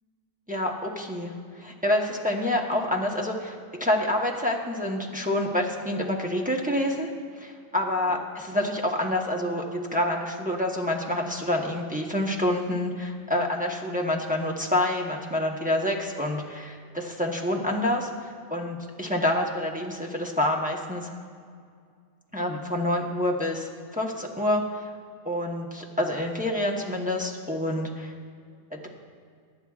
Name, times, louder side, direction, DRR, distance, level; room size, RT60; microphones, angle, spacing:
voice 1, 0.5-7.1 7.4-18.1 18.5-21.1 22.3-24.8 25.2-28.1 28.7-28.9, left 1 dB, 5° right, -1 dB, 0.8 m, -27 dB
23.5 x 9.9 x 2.4 m, 2.1 s
omnidirectional pair, 1.5 m